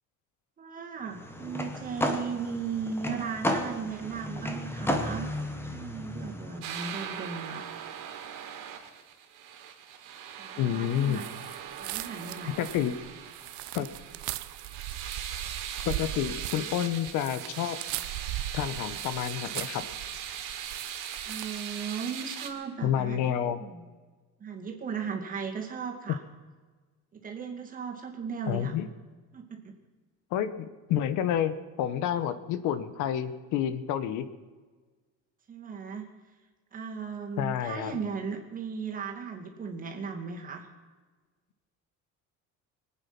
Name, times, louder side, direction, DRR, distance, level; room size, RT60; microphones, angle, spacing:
voice 1, 0.6-5.3 5.7-7.6 10.4-11.3 11.8-12.6 21.2-23.8 24.4-26.2 27.1-28.7 29.3-29.7 35.5-36.1 36.7-40.7, right 6 dB, 25° right, 2 dB, 2.3 m, -36 dB
sound 1, 1.1-6.6, left 1 dB, 10° left, 1.4 m, -33 dB
sound 2, 6.6-22.5, right 9 dB, 85° right, 3.0 m, -40 dB
voice 2, 10.6-11.2 12.4-12.9 13.7-13.9 15.8-17.8 18.5-19.9 22.8-23.6 28.5-28.9 30.3-34.3 37.4-38.0, left 10 dB, 75° left, 13 dB, 1.2 m, -29 dB
sound 3, 11.1-21.7, right 15 dB, 70° right, 0.7 m, -39 dB
25.0 x 9.0 x 6.0 m, 1.4 s
cardioid pair, 170°, 30 cm